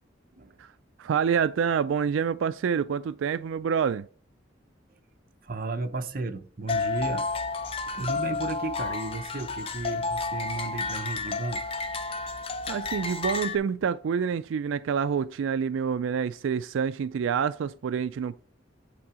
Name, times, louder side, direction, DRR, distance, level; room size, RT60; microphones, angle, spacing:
voice 1, 1.0-4.1 12.7-18.4, right 7 dB, 90° right, 0.3 m, -27 dB
voice 2, 5.4-7.3 7.9-11.6, right 3 dB, 50° right, 0.7 m, -34 dB
sound 1, 6.7-13.6, left 4 dB, 30° left, 0.6 m, -31 dB
8.7 x 3.8 x 4.9 m
head